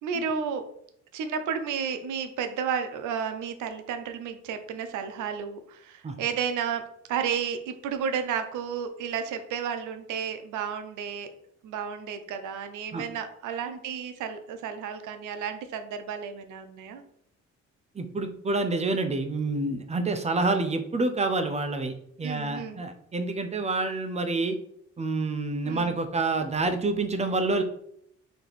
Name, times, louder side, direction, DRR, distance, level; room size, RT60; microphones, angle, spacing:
voice 1, 0.0-0.6 1.1-11.3 11.6-17.0 22.2-22.8 25.6-26.0, right 7 dB, 80° right, 9 dB, 0.6 m, -32 dB
voice 2, 17.9-24.6 25.0-27.6, right 3 dB, 20° right, 7 dB, 0.5 m, -28 dB
3.4 x 2.8 x 4.0 m, 0.70 s
cardioid pair, 90°, 30 cm